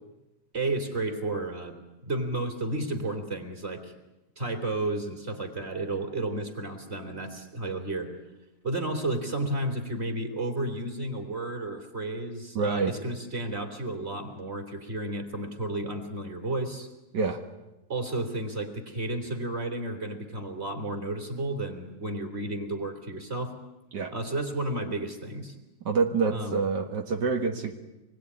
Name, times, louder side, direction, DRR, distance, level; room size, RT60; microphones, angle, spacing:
voice 1, 0.5-1.8 2.0-4.0 4.4-8.1 8.6-16.9 17.9-23.5 24.1-25.6 26.3-26.6, right 2 dB, 35° right, 5 dB, 3.6 m, -32 dB
voice 2, 12.6-12.9 17.1-17.4 23.9-24.1 25.9-27.7, right 4 dB, 85° right, 3 dB, 2.3 m, -26 dB
25.5 x 21.0 x 9.9 m, 0.96 s
omnidirectional pair, 1.8 m